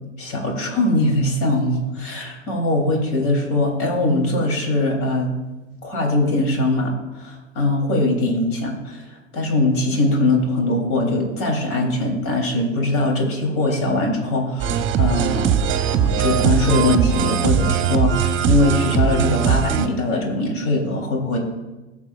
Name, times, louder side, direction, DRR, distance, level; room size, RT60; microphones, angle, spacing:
voice 1, 0.2-5.4 5.8-6.9 7.2-21.4, left 2 dB, 55° left, 1 dB, 3.5 m, -21 dB
sound 1, 14.6-19.9, right 8 dB, 35° right, 0.9 m, -20 dB
20.0 x 7.2 x 2.5 m, 1.1 s
hypercardioid pair, 90°, 36 cm